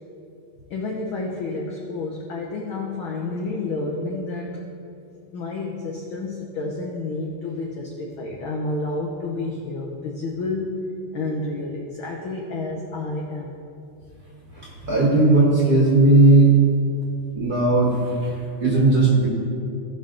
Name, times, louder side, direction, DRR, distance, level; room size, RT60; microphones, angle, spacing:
voice 1, 0.7-4.6 5.3-10.8 11.1-13.5, left 2 dB, 80° left, -1 dB, 1.1 m, -30 dB
voice 2, 14.5-16.5 17.3-19.3, right 2 dB, 40° right, -4 dB, 1.5 m, -17 dB
16.5 x 5.6 x 3.9 m, 2.6 s
omnidirectional pair, 3.5 m